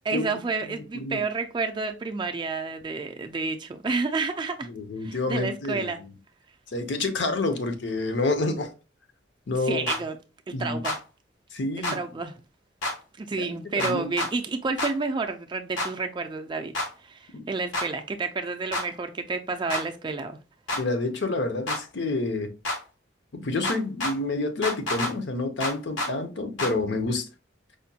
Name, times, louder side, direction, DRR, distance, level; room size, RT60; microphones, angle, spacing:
voice 1, 0.0-4.7 5.0-6.0 9.6-10.2 10.5-11.0 11.8-12.4 13.2-16.7 17.0-20.4, right 4 dB, 25° right, 0.3 m, -30 dB
voice 2, 0.7-1.2 4.6-5.9 6.7-8.7 9.5-9.9 10.5-10.8 11.5-12.0 13.4-14.1 17.3-17.5 20.7-22.5 23.3-27.3, left 2 dB, 65° left, 0.6 m, -28 dB
sound 1, 9.9-10.0 10.8-11.0 11.8-12.0 12.8-12.9 13.8-14.3 14.8-14.9 15.8-15.9 16.7-16.9 17.7-17.9 18.7-18.9 19.7-19.8 20.7-20.8 21.7-21.8 22.6-22.8 23.6-24.1 24.6-25.1 25.6-26.1 26.6-26.7, left 1 dB, 85° left, 1.0 m, -28 dB
4.9 x 2.2 x 2.7 m
head